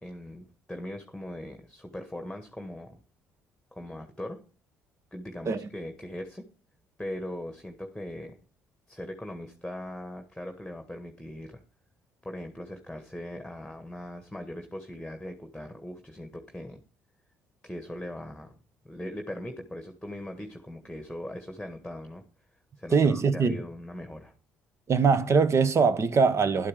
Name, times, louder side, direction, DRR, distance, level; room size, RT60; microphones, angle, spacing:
voice 1, 0.0-3.0 3.7-4.4 5.1-6.4 7.0-8.4 8.9-11.6 12.2-16.8 17.6-18.5 18.8-22.2 22.8-24.3, left 1 dB, 5° left, 1.6 m, -40 dB
voice 2, 22.9-23.6 24.9-26.7, right 5 dB, 40° right, 1.2 m, -22 dB
11.5 x 8.5 x 4.9 m
hypercardioid pair, 50°, 7 cm